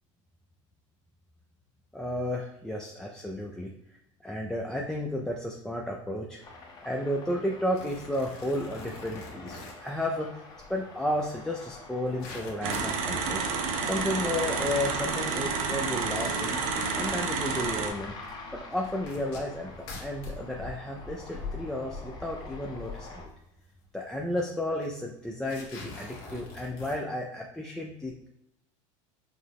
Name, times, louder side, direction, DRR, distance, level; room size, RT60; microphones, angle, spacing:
voice 1, 1.9-3.7 4.2-6.4 6.8-10.3 10.7-13.4 13.9-16.5 17.0-18.1 18.5-23.3 23.9-28.3, left 1 dB, 5° left, -1 dB, 0.3 m, -33 dB
sound 1, 6.4-23.2, left 3 dB, 25° left, 0.8 m, -43 dB
sound 2, 7.7-9.9 11.2-11.3 11.6-11.7 11.9-13.0 13.7-14.0 14.6-14.7 15.8-15.9 17.2-17.4 18.2-18.3 18.7-20.4 21.1-21.2 21.4-21.6 23.3-23.4 23.7-23.8 24.0-24.3 24.8-24.9 25.4-27.0, left 3 dB, 55° left, 1.3 m, -45 dB
sound 3, 12.6-17.9, right 5 dB, 80° right, 0.8 m, -30 dB
5.8 x 2.0 x 3.4 m, 0.86 s
supercardioid pair, 125°, 17 cm